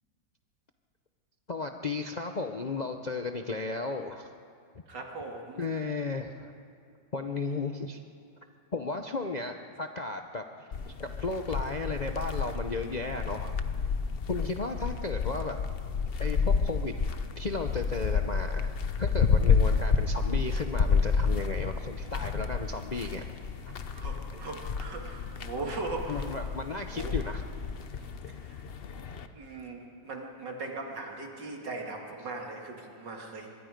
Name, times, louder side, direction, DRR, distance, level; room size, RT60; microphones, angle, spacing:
voice 1, 1.5-4.3 5.6-6.5 7.1-8.0 8.7-10.7 11.0-13.5 14.3-15.6 16.2-16.9 17.4-23.3 23.6-23.7 24.3-24.4 26.1-27.4, left 3 dB, 80° left, 5 dB, 0.3 m, -34 dB
voice 2, 4.9-5.6 22.9-23.1 23.9-26.3 26.9-27.1 28.3-28.6 29.3-33.5, right 3 dB, 65° right, 1 dB, 3.0 m, -39 dB
sound 1, 10.7-29.3, left 5 dB, 50° left, 0.7 m, -30 dB
24.5 x 21.5 x 5.2 m, 2.3 s
omnidirectional pair, 2.0 m